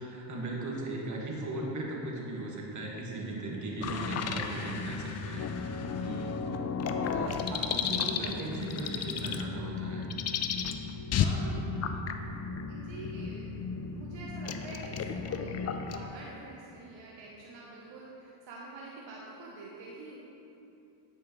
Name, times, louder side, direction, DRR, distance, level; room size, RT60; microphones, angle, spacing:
voice 1, 0.0-10.0, right 2 dB, 35° right, -3 dB, 1.6 m, -38 dB
voice 2, 2.9-3.6 4.0-4.1 5.5-5.9 11.2-11.6 12.7-13.5 13.9-20.2, right 3 dB, 65° right, -3 dB, 1.0 m, -47 dB
sound 1, 3.8-16.1, left 6 dB, 35° left, 0.4 m, -34 dB
9.2 x 5.2 x 3.1 m, 2.8 s
supercardioid pair, 80°, 50 cm